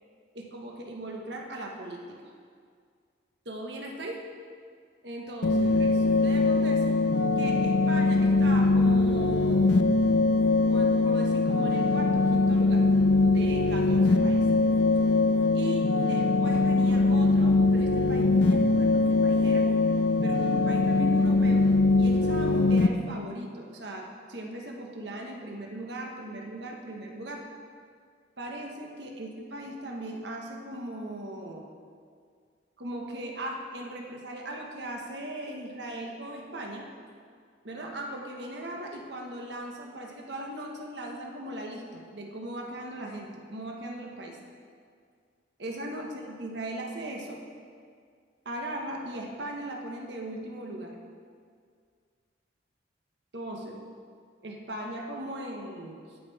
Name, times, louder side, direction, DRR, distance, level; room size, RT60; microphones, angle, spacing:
voice 1, 0.3-2.0 3.4-4.2 5.0-7.0 7.4-9.7 10.7-12.9 13.2-14.5 15.5-19.7 20.2-21.7 22.0-27.4 28.4-31.7 32.8-36.9 37.6-44.4 45.6-47.4 48.4-51.0 53.3-53.8 54.4-56.2, right 1 dB, 70° right, 1 dB, 1.3 m, -38 dB
sound 1, 5.4-22.9, left 3 dB, 70° left, 0.5 m, -22 dB
16.5 x 5.7 x 4.2 m, 2.1 s
head